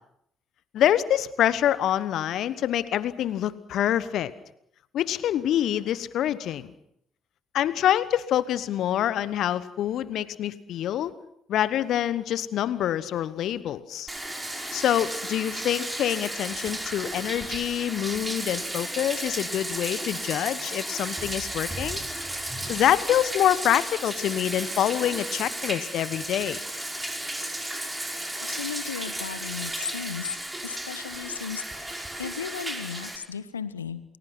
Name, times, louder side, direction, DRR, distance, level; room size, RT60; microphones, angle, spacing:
voice 1, 0.7-4.3 4.9-6.7 7.5-11.1 11.5-14.1 14.7-22.0 22.7-26.6, left 11 dB, 60° left, 16 dB, 1.1 m, -26 dB
Bathtub (filling or washing), 14.1-33.2, right 1 dB, 15° right, 5.6 m, -34 dB
voice 2, 28.4-30.4 30.6-34.0, left 7 dB, 90° left, 16 dB, 1.0 m, -35 dB
29.5 x 20.5 x 6.1 m, 0.74 s
figure-of-eight pair, 45°, 0 cm